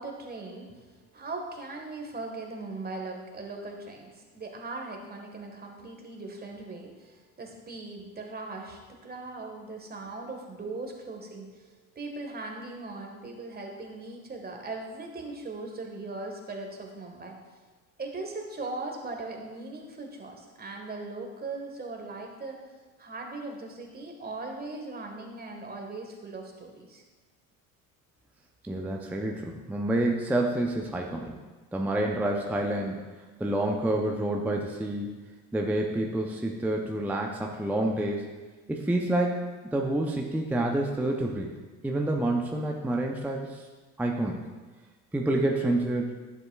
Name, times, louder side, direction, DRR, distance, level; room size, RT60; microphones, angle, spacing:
voice 1, 0.0-17.4 18.0-22.6 23.0-27.0, right 3 dB, 20° right, 2 dB, 1.6 m, -39 dB
voice 2, 28.6-31.4 31.7-33.0 33.4-35.1 35.5-38.3 38.7-41.5 41.8-43.6 44.0-44.4 45.1-46.2, right 1 dB, 5° right, 1 dB, 0.6 m, -28 dB
10.5 x 7.2 x 2.4 m, 1.3 s
hypercardioid pair, 70°, 46 cm